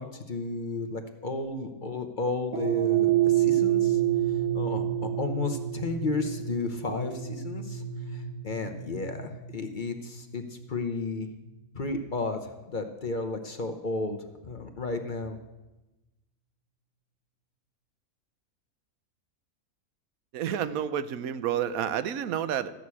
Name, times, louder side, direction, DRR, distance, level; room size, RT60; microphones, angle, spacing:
voice 1, 0.0-4.0 4.5-7.8 8.1-11.3 11.7-15.4, left 3 dB, 40° left, 6 dB, 0.9 m, -33 dB
sound 1, 2.5-11.0, right 12 dB, 65° right, 1.7 m, -28 dB
voice 2, 20.3-22.7, right 9 dB, 85° right, 14 dB, 1.1 m, -30 dB
13.0 x 6.2 x 8.5 m, 1.1 s
omnidirectional pair, 1.5 m